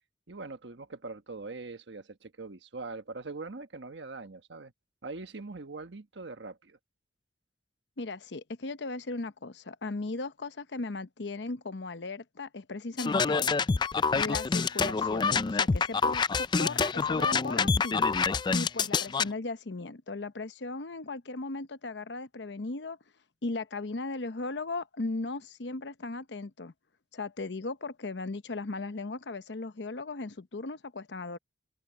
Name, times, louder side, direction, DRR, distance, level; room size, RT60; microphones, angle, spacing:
voice 1, 0.3-4.7 5.0-6.8, right 3 dB, 85° right, 1.3 m, -42 dB
voice 2, 8.0-13.5 14.1-18.1 18.5-23.0 23.4-26.7 27.1-31.4, left 3 dB, 75° left, 0.9 m, -37 dB
sound 1, 13.0-19.2, left 5 dB, 25° left, 0.3 m, -26 dB
head